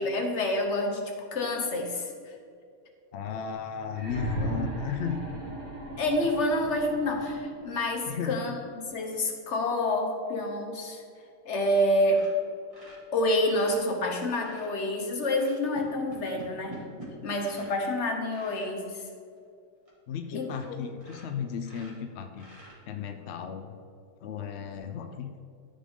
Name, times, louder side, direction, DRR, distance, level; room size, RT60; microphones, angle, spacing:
voice 1, 0.0-2.3 6.0-11.0 11.4-12.3 13.1-16.8 17.2-19.0 20.3-20.8, left 1 dB, 45° left, 2 dB, 1.3 m, -28 dB
voice 2, 3.1-5.2 8.1-8.4 20.1-22.5 22.9-23.7 24.2-25.3, left 7 dB, 75° left, 6 dB, 0.6 m, -35 dB
sound 1, 3.9-7.7 8.9-9.0, right 2 dB, 40° right, 2.1 m, -36 dB
sound 2, 11.6-11.8 12.0-14.7 15.2-17.8 18.3-18.7 19.4-19.5 19.9-20.0 20.4-20.7 21.0-23.1 24.6-24.8, right 1 dB, 20° right, 2.5 m, -48 dB
13.5 x 5.4 x 3.7 m, 2.3 s
omnidirectional pair, 1.8 m